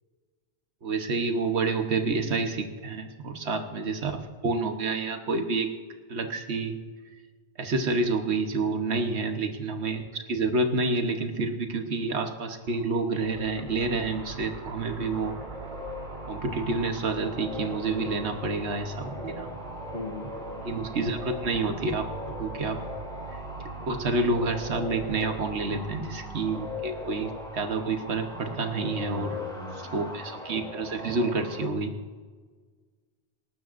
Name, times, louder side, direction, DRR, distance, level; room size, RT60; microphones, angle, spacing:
voice 1, 0.8-5.7 6.1-6.8 7.6-15.4 16.3-19.5 20.6-22.8 23.9-29.4 29.7-31.9, right 3 dB, 85° right, 5 dB, 1.4 m, -29 dB
voice 2, 8.9-9.2 19.9-20.3 25.7-25.9 29.0-29.9, left 2 dB, 55° left, -2 dB, 2.0 m, -38 dB
sound 1, 12.5-31.7, left 2 dB, 5° left, 3.0 m, -41 dB
sound 2, 13.1-29.3, right 4 dB, 50° right, 1.1 m, -43 dB
27.0 x 12.5 x 2.6 m, 1.5 s
omnidirectional pair, 1.1 m